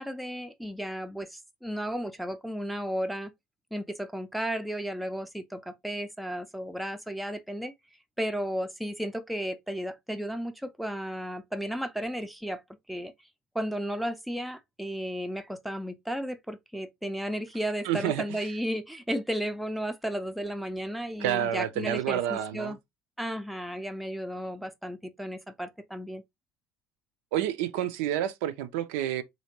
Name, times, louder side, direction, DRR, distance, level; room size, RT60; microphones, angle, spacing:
voice 1, 0.0-3.3 3.7-7.7 8.2-12.6 12.9-13.1 13.5-22.8 23.2-26.2, equal, ahead, 0.4 m, -34 dB
voice 2, 17.8-18.5 21.2-22.8 27.3-29.2, right 11 dB, 60° right, 0.4 m, -29 dB
4.0 x 2.8 x 2.8 m
figure-of-eight pair, 65°, 7 cm